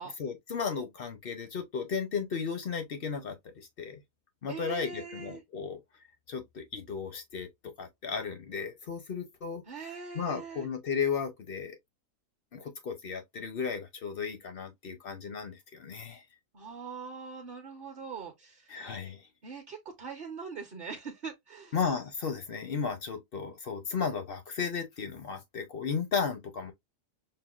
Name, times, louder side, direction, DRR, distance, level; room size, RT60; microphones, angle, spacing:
voice 1, 0.2-4.0 4.4-5.8 6.3-7.5 7.8-9.6 10.1-11.8 12.5-16.2 18.7-19.2 21.7-26.7, left 6 dB, 60° left, 0.6 m, -34 dB
voice 2, 4.5-5.4 9.7-10.7 16.5-18.8 19.4-21.8, right 5 dB, 50° right, 0.7 m, -42 dB
5.7 x 2.1 x 2.3 m
omnidirectional pair, 1.7 m